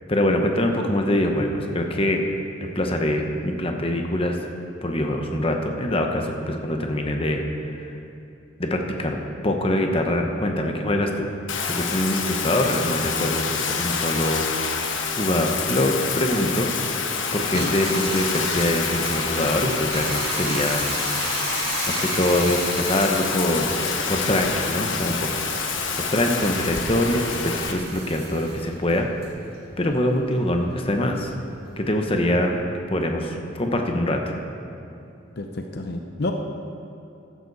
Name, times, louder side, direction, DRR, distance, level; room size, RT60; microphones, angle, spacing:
voice 1, 0.1-2.2 2.7-4.4 4.8-7.4 7.7-7.8 8.6-11.3 11.7-14.5 15.2-16.7 17.3-20.8 21.9-23.7 24.1-29.1 29.8-31.3 31.8-32.6 32.9-34.3, left 1 dB, 30° left, 3 dB, 1.0 m, -24 dB
Bathtub (filling or washing), 11.5-27.7, left 5 dB, 85° left, 1.1 m, -27 dB
Bathtub (filling or washing) 2, 17.4-30.2 30.5-32.3, right 3 dB, 55° right, 2.3 m, -34 dB
voice 2, 35.4-36.3, left 2 dB, 55° left, 4 dB, 0.8 m, -29 dB
14.5 x 11.5 x 4.2 m, 2.8 s
head